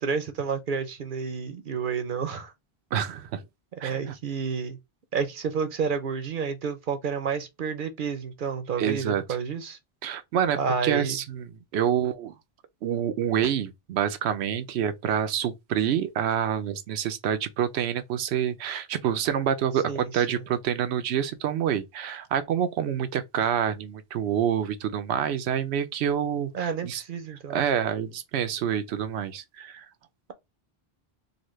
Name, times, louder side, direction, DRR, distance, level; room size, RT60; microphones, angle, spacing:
voice 1, 0.0-2.5 3.8-4.8 5.1-9.8 10.6-11.2 19.9-20.4 26.5-27.6, right 6 dB, 60° right, 0.7 m, -30 dB
voice 2, 2.9-3.4 3.8-4.1 8.8-9.2 10.0-12.3 12.8-27.0 27.5-29.9, right 9 dB, 90° right, 0.9 m, -27 dB
3.9 x 2.1 x 3.1 m
omnidirectional pair, 1.1 m